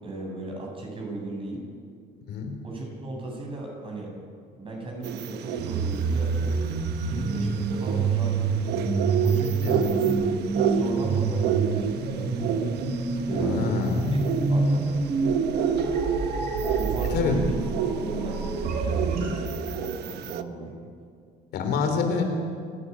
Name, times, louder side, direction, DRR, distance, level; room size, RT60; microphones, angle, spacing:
voice 1, 0.0-1.6 2.6-4.1 4.5-6.6 7.0-8.6 9.2-10.2 10.5-12.7 13.2-13.6 14.0-14.2 14.5-15.0 16.8-17.5 18.0-20.8, right 2 dB, 30° right, 0 dB, 7.9 m, -35 dB
sound 1, 5.0-20.4, right 8 dB, 75° right, 1.1 m, -30 dB
sound 2, 5.6-19.3, right 4 dB, 60° right, 5.2 m, -27 dB
voice 2, 13.4-14.1 17.1-17.5 21.5-22.2, left 5 dB, 75° left, 5 dB, 3.5 m, -26 dB
28.0 x 11.0 x 9.8 m, 2.1 s
cardioid pair, 110°, 17 cm